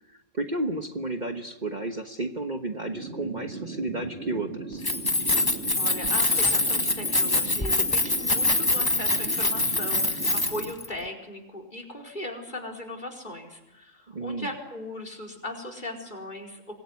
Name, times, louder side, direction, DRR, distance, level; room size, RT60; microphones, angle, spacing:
voice 1, 0.1-4.8 14.1-14.5, right 2 dB, 35° right, 5 dB, 1.4 m, -32 dB
sound 1, 2.9-10.7, right 4 dB, 50° right, 2.4 m, -38 dB
Keys jangling, 4.7-10.9, left 2 dB, 15° left, 1.5 m, -24 dB
voice 2, 5.4-16.7, left 1 dB, 35° left, 5 dB, 4.8 m, -38 dB
26.0 x 20.5 x 9.6 m, 0.98 s
omnidirectional pair, 1.3 m